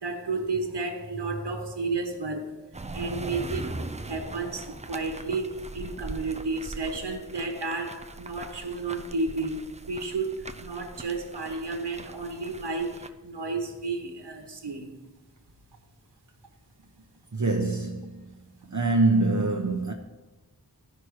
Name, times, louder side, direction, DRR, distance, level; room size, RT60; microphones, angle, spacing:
voice 1, 0.0-2.6 2.9-14.9, right 3 dB, 85° right, 1.3 m, -32 dB
sound 1, 2.7-13.1, right 2 dB, 15° right, 0.5 m, -40 dB
voice 2, 17.3-18.2 18.7-19.9, right 2 dB, 45° right, 1.0 m, -24 dB
14.5 x 5.9 x 4.8 m
wide cardioid pair, 60°, 40 cm